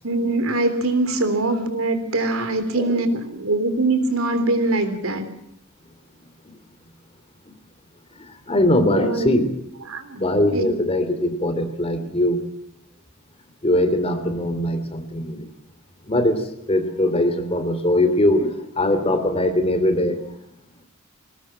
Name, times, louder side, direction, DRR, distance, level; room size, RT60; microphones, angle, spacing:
voice 1, 0.0-5.3 8.9-9.3 9.9-10.2 10.5-10.8, right 2 dB, 80° right, 10 dB, 3.6 m, -23 dB
voice 2, 8.5-9.5 10.2-12.4 13.6-15.4 16.1-16.4 16.7-20.2, left 1 dB, 30° left, 9 dB, 3.0 m, -21 dB
21.5 x 19.0 x 7.5 m, 0.75 s
head